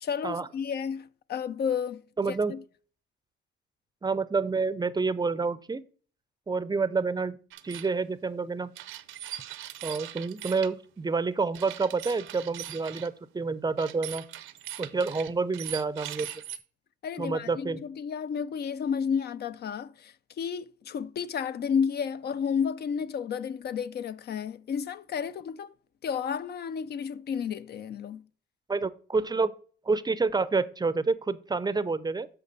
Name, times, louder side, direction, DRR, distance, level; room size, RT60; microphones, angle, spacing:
voice 1, 0.0-2.6 17.0-25.7 26.0-28.2, left 7 dB, 55° left, 0.5 m, -32 dB
voice 2, 2.2-2.5 4.0-5.8 6.5-7.4 7.6-8.7 9.8-14.2 14.8-16.3 17.2-17.8 28.7-29.5 29.9-32.3, right 4 dB, 20° right, 0.5 m, -28 dB
sound 1, 7.5-7.9 8.7-10.7 11.5-13.1 13.8-16.6, right 12 dB, 85° right, 0.7 m, -40 dB
8.2 x 6.0 x 4.0 m
cardioid pair, 90°, 20 cm